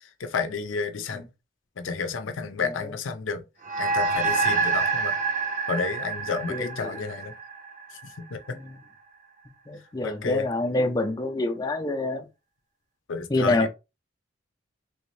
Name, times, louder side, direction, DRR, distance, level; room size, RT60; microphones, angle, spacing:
voice 1, 0.2-1.2 1.8-3.4 3.8-5.1 5.7-7.3 8.2-8.6 10.0-10.5 13.1-13.7, left 5 dB, 85° left, 0.6 m, -31 dB
voice 2, 2.6-2.9 6.5-7.0 8.5-8.8 9.7-12.3 13.3-13.7, left 2 dB, 20° left, 0.5 m, -27 dB
sound 1, 3.6-8.3, right 4 dB, 40° right, 0.7 m, -27 dB
3.4 x 2.6 x 3.2 m
head